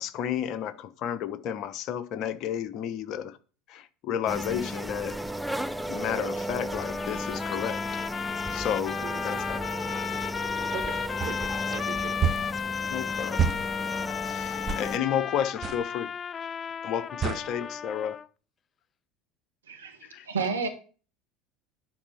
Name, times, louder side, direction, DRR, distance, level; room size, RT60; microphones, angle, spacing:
voice 1, 0.0-3.4 3.7-5.2 5.9-7.8 8.5-9.0 9.2-9.6 12.9-13.6 14.2-16.1 16.8-18.2 20.0-20.3, left 9 dB, 55° left, 1.0 m, -32 dB
sound 1, 4.3-15.0, equal, ahead, 0.7 m, -34 dB
sound 2, 6.7-18.3, left 7 dB, 35° left, 0.4 m, -34 dB
voice 2, 9.0-9.4 10.7-12.2 17.2-17.4, right 9 dB, 55° right, 1.5 m, -40 dB
sound 3, 11.2-11.3 12.2-12.5 13.4-13.6 14.7-14.9 15.6-15.8 17.2-17.4, right 7 dB, 35° right, 1.2 m, -27 dB
voice 3, 19.7-20.7, right 5 dB, 90° right, 1.9 m, -31 dB
10.5 x 4.2 x 7.1 m
hypercardioid pair, 75°, 0 cm